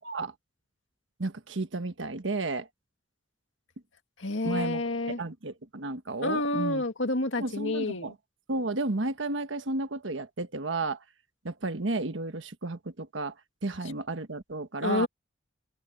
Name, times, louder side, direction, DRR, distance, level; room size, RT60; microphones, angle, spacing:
voice 1, 0.0-0.3 1.2-2.7 4.4-6.8 7.4-8.1 8.5-11.0 11.4-13.3 13.6-15.1, right 2 dB, 80° right, 1.3 m, -33 dB
voice 2, 4.2-5.2 6.2-8.1 14.8-15.1, left 2 dB, 85° left, 2.1 m, -29 dB
open air
head